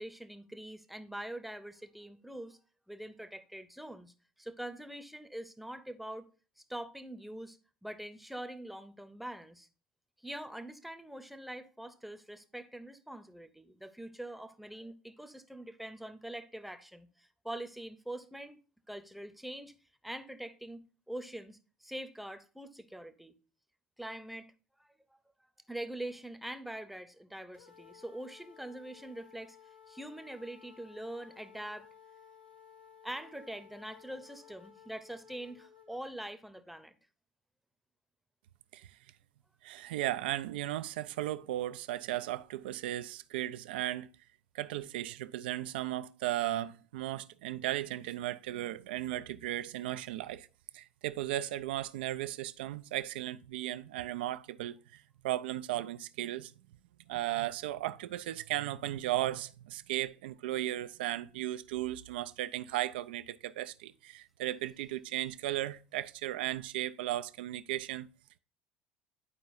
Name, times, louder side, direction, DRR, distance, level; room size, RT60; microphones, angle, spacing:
voice 1, 0.0-2.6 2.9-6.3 6.7-9.7 10.2-18.6 18.9-19.7 20.0-23.3 24.0-24.5 24.8-24.9 25.7-29.6 29.9-31.9 33.0-36.9, right 1 dB, ahead, 0.7 m, -44 dB
sound 1, 27.5-36.0, left 7 dB, 90° left, 1.0 m, -57 dB
voice 2, 39.6-44.1 44.5-50.5 50.7-56.5 57.1-68.1, right 14 dB, 75° right, 0.4 m, -36 dB
11.0 x 4.6 x 2.5 m
hypercardioid pair, 70°, 5 cm